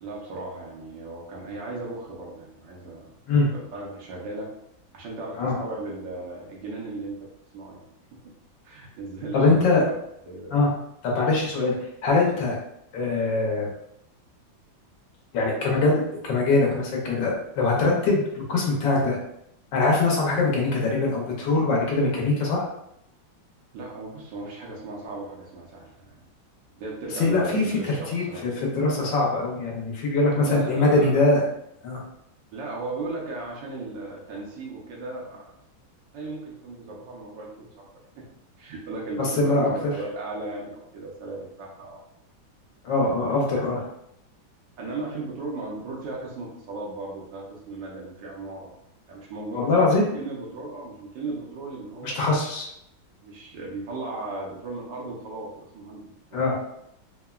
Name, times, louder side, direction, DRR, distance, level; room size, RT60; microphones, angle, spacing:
voice 1, 0.0-3.1 3.5-4.5 4.9-7.8 8.1-8.2 8.6-9.9 10.3-10.6 23.7-26.2 26.7-28.4 30.4-31.2 32.5-35.5 36.1-37.8 38.2-38.3 38.6-42.0 43.0-43.1 43.5-43.6 44.8-48.7 49.1-52.2 53.2-56.4, right 2 dB, 75° right, -2 dB, 1.3 m, -36 dB
voice 2, 9.3-9.8 10.5-10.7 11.0-11.7 12.0-12.6 12.9-13.7 15.3-19.2 19.7-22.7 27.1-31.4 31.8-32.0 39.2-39.7 42.8-43.8 49.5-50.0 52.0-52.7 56.3-56.6, left 3 dB, 75° left, -2 dB, 1.3 m, -22 dB
3.5 x 2.1 x 2.3 m, 0.77 s
omnidirectional pair, 2.1 m